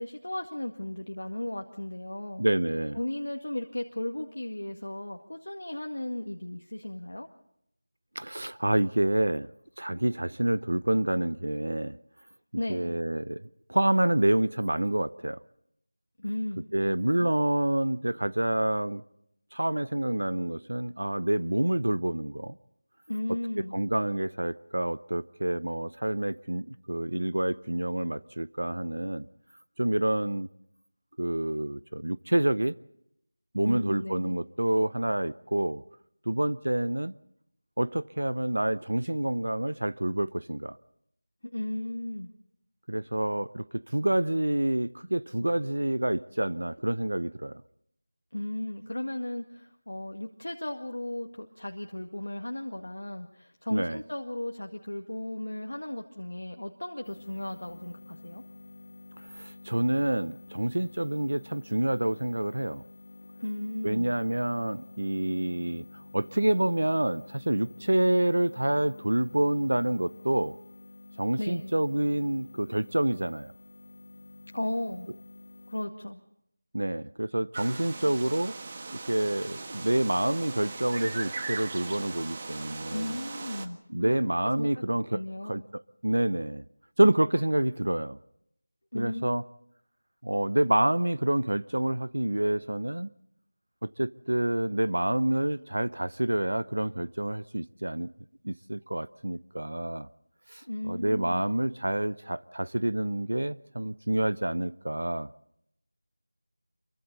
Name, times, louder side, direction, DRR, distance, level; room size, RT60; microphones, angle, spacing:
voice 1, 0.0-2.4 2.9-7.3 12.6-13.0 16.2-17.3 23.1-23.8 33.7-34.4 41.5-42.3 48.3-58.4 63.4-64.1 71.4-71.7 74.5-75.1 75.7-76.2 82.9-84.2 84.6-84.8 85.1-85.6 88.9-89.3 100.6-101.4, left 1 dB, 85° left, 1.9 m, -35 dB
voice 2, 2.4-3.0 8.1-9.5 9.8-12.0 12.7-13.4 13.7-15.4 16.7-19.0 19.5-22.5 23.7-29.3 29.8-30.5 31.2-32.7 33.5-35.8 36.3-37.1 37.8-40.8 42.9-47.6 53.7-54.0 59.3-62.8 63.8-70.5 71.2-73.5 76.7-78.5 78.9-83.2 83.9-86.6 87.0-88.2 88.9-89.4 90.2-93.1 94.0-98.1 98.4-100.1 100.5-105.3, right 1 dB, 85° right, 0.7 m, -28 dB
sound 1, 57.0-75.9, left 3 dB, 45° left, 1.7 m, -49 dB
sound 2, 77.5-83.7, right 3 dB, 30° right, 1.5 m, -39 dB
28.0 x 23.5 x 4.1 m
figure-of-eight pair, 175°, 0 cm